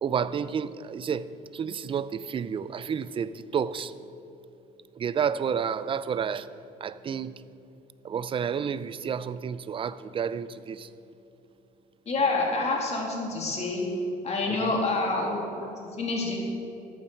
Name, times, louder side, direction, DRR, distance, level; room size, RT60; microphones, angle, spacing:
voice 1, 0.0-3.9 5.0-6.5 6.8-7.4 8.0-10.9 14.5-14.9, right 7 dB, 30° right, 0.4 m, -30 dB
voice 2, 12.1-13.8 14.2-16.4, left 3 dB, 40° left, 2.7 m, -28 dB
14.0 x 9.1 x 4.6 m
cardioid pair, 110°, 17 cm